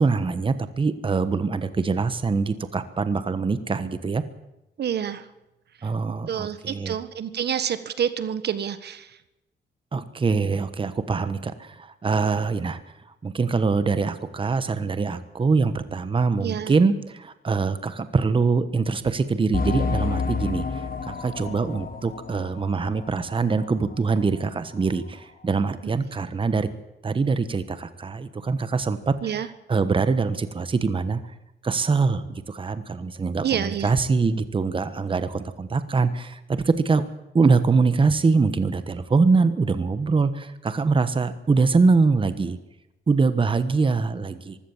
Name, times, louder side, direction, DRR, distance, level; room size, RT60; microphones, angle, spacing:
voice 1, 0.0-4.2 5.8-7.0 9.9-12.8 13.2-26.7 27.0-31.2 31.6-37.0 37.3-42.6 43.1-44.6, right 4 dB, 30° right, 12 dB, 1.3 m, -23 dB
voice 2, 4.8-5.2 6.3-9.1 16.4-16.7 29.2-29.5 33.4-33.9, right 9 dB, 65° right, 13 dB, 1.4 m, -28 dB
sound 1, 19.5-23.8 24.1-24.2 24.8-24.9, left 5 dB, 50° left, 2.3 m, -30 dB
23.5 x 16.0 x 7.3 m, 0.93 s
cardioid pair, 130°, 18 cm